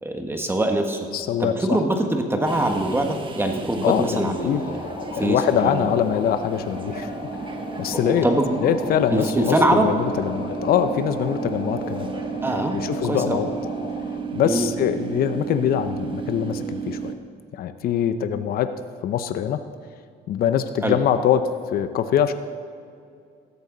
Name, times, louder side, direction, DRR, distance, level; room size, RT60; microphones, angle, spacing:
voice 1, 0.0-1.1 1.4-4.8 5.1-5.9 7.9-8.6 9.1-9.9 12.4-12.8 13.0-13.4 14.4-14.7 20.8-21.0, right 1 dB, 15° right, 4 dB, 1.5 m, -23 dB
voice 2, 1.1-1.8 3.8-4.6 5.2-7.1 7.8-8.3 8.6-12.1 12.7-13.5 14.3-17.1 17.5-18.7 19.0-19.6 20.3-22.3, left 9 dB, 65° left, 10 dB, 0.7 m, -23 dB
sound 1, 2.4-17.1, right 5 dB, 30° right, 1.3 m, -33 dB
sound 2, 4.2-14.2, left 4 dB, 90° left, 3.1 m, -37 dB
17.0 x 13.5 x 4.0 m, 2.4 s
cardioid pair, 110°, 17 cm